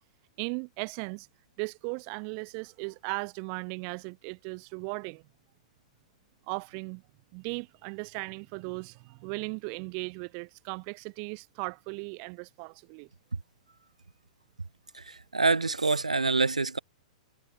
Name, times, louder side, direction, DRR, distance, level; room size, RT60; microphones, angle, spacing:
voice 1, 0.4-1.3 1.6-5.2 6.5-7.0 7.3-13.1, right 40 dB or more, 40° right, 0.8 m, -37 dB
voice 2, 14.9-16.8, right 3 dB, 80° right, 0.6 m, -26 dB
figure-of-eight pair, 105°, 4 cm